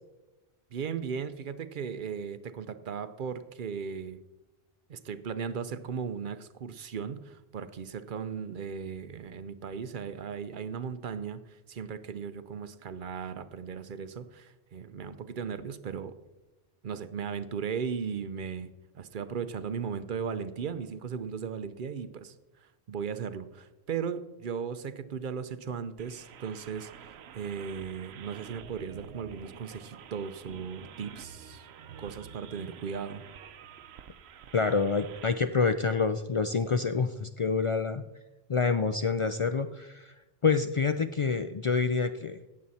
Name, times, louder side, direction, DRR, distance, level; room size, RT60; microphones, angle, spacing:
voice 1, 0.7-4.2 4.9-16.1 16.8-18.7 18.9-31.7 32.0-33.2, right 6 dB, 55° right, 12 dB, 0.8 m, -37 dB
sound 1, 26.0-35.3, right 8 dB, 90° right, 0.9 m, -49 dB
voice 2, 34.5-38.0 38.5-40.1 40.4-42.4, left 5 dB, 55° left, 9 dB, 0.3 m, -27 dB
17.0 x 7.5 x 4.2 m, 1.1 s
omnidirectional pair, 1.0 m